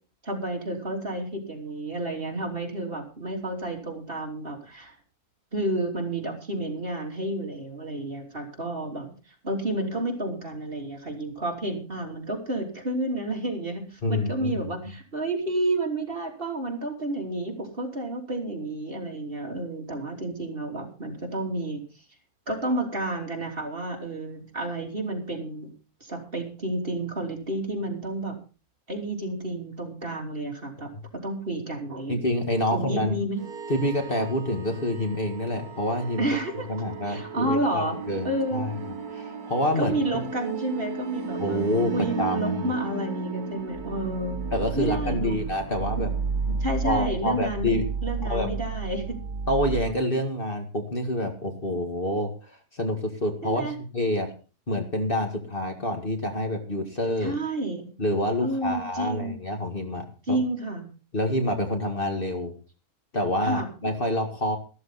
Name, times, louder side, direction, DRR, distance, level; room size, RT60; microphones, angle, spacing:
voice 1, 0.2-4.9 5.5-9.2 9.4-21.8 22.5-25.7 26.0-28.4 28.9-30.9 31.2-32.1 32.7-33.4 36.2-36.7 37.0-38.0 38.2-38.7 39.7-41.6 41.9-44.4 44.8-45.4 46.0-46.1 46.6-47.7 48.0-49.2 53.4-53.7 57.2-57.9 58.4-59.4 60.3-60.9 63.4-63.7, right 1 dB, 40° right, 1 dB, 3.4 m, -30 dB
voice 2, 14.0-14.7 32.1-33.2 33.7-36.3 36.7-40.0 41.4-42.7 44.5-46.1 46.4-47.8 48.2-48.5 49.5-54.3 54.7-57.4 58.0-60.4 61.1-62.5 63.1-64.6, left 1 dB, 35° left, 4 dB, 2.2 m, -27 dB
sound 1, 33.4-49.9, right 5 dB, 80° right, 2.2 m, -33 dB
14.5 x 13.5 x 4.1 m, 0.35 s
omnidirectional pair, 1.5 m